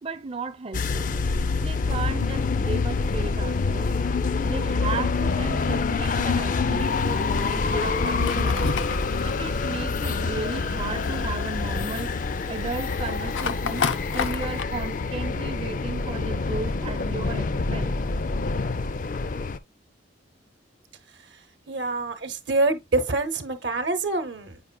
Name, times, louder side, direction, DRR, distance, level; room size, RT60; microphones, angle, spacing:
voice 1, 0.0-1.1 1.6-3.9 4.4-8.7 9.2-12.1 12.5-13.9 14.1-18.0, right 4 dB, 30° right, 0.5 m, -35 dB
sound 1, 0.7-19.6, left 4 dB, 45° left, 0.4 m, -26 dB
Fire, 6.8-14.6, left 6 dB, 85° left, 0.6 m, -34 dB
voice 2, 21.7-24.6, right 2 dB, 70° right, 0.9 m, -26 dB
8.0 x 5.2 x 2.3 m
head